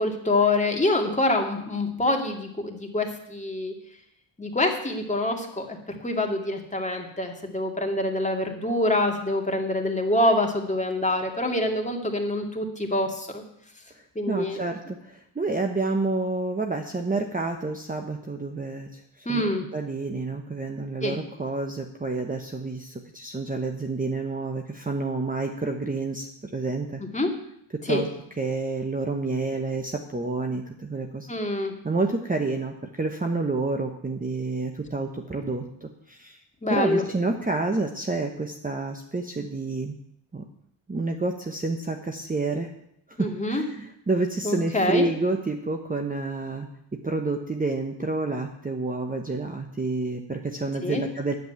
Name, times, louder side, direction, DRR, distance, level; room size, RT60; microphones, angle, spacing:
voice 1, 0.0-3.7 4.4-13.4 14.2-14.6 19.3-19.7 21.0-21.2 27.0-27.3 27.8-28.0 31.3-31.7 36.6-37.0 43.2-43.6 44.4-45.1 50.8-51.0, left 1 dB, 15° left, 1 dB, 2.2 m, -26 dB
voice 2, 13.9-19.4 19.7-27.0 27.7-28.1 28.4-31.3 31.8-36.4 36.7-40.0 40.3-40.4 40.9-42.7 43.2-46.7 47.0-51.3, right 3 dB, 15° right, 4 dB, 1.0 m, -29 dB
10.0 x 7.9 x 9.4 m, 0.75 s
cardioid pair, 110°, 48 cm